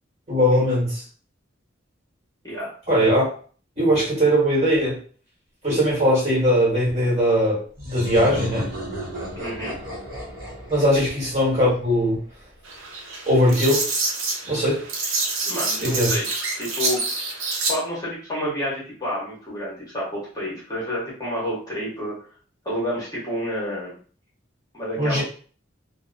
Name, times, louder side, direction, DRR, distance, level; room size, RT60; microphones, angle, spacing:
voice 1, 0.3-1.0 2.9-3.3 3.8-5.0 5.6-8.7 10.7-12.2 13.3-13.9 14.5-14.8 15.8-16.2 25.0-25.2, equal, 35° right, -7 dB, 1.3 m, -20 dB
sound 1, 7.8-12.3, equal, 50° right, 1.0 m, -34 dB
voice 2, 9.4-9.8 15.4-16.3 16.6-17.1 17.7-22.2 22.6-24.0 24.7-25.2, equal, 20° left, -6 dB, 0.9 m, -29 dB
sound 2, 12.6-17.7, right 3 dB, 85° right, 0.7 m, -27 dB
2.7 x 2.1 x 2.5 m, 0.42 s
head